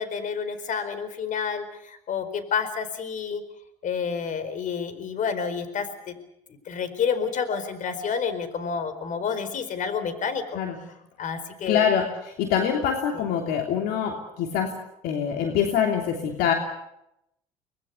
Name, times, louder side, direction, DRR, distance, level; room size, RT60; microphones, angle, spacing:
voice 1, 0.0-3.4 3.8-6.1 6.7-10.6 11.2-11.9 13.1-13.3, left 6 dB, 50° left, 11 dB, 4.4 m, -29 dB
voice 2, 11.7-12.1 12.4-14.7 15.0-16.5, left 8 dB, 70° left, 3 dB, 3.1 m, -24 dB
25.0 x 20.5 x 8.2 m, 0.83 s
hypercardioid pair, 75°, 17 cm